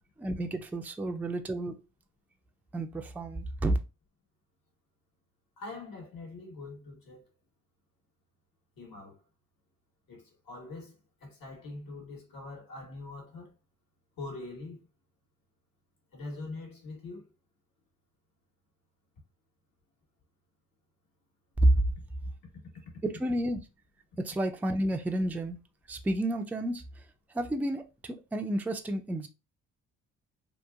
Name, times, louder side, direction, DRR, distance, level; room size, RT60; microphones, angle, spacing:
voice 1, 0.2-1.8 2.7-3.8 21.6-21.8 23.2-23.6 24.2-25.6 25.9-26.8 27.3-29.3, right 1 dB, 5° right, 0.4 m, -29 dB
voice 2, 5.6-7.2 8.8-9.2 10.1-13.5 14.2-14.8 16.1-17.3 22.7-22.8, left 3 dB, 65° left, 1.4 m, -43 dB
2.8 x 2.4 x 2.3 m
supercardioid pair, 60°, 37 cm